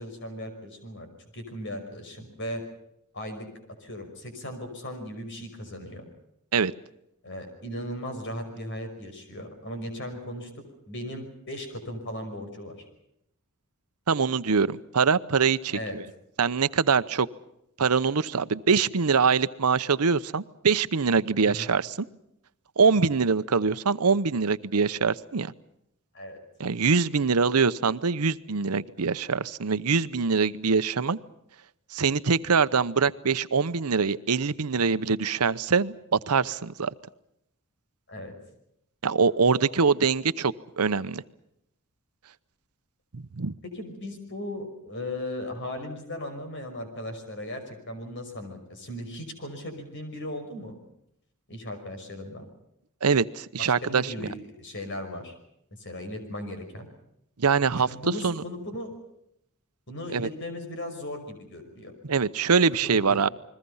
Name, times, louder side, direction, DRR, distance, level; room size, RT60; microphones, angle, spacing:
voice 1, 0.0-2.6 3.1-3.5 3.8-6.1 7.2-10.5 10.9-12.8 15.7-16.0 21.4-21.7 26.1-26.4 38.1-38.3 43.6-50.8 51.5-52.5 53.6-55.3 55.7-56.9 57.8-59.0 59.9-61.9 62.7-63.2, left 1 dB, 55° left, 7 dB, 5.7 m, -37 dB
voice 2, 14.1-16.0 16.4-17.3 17.8-22.1 22.8-25.5 26.6-31.2 31.9-36.9 39.0-41.2 43.1-43.5 53.0-54.3 57.4-57.9 58.2-58.4 60.1-60.3 62.0-63.3, right 5 dB, 90° right, 14 dB, 0.8 m, -24 dB
29.5 x 21.5 x 5.6 m, 0.79 s
head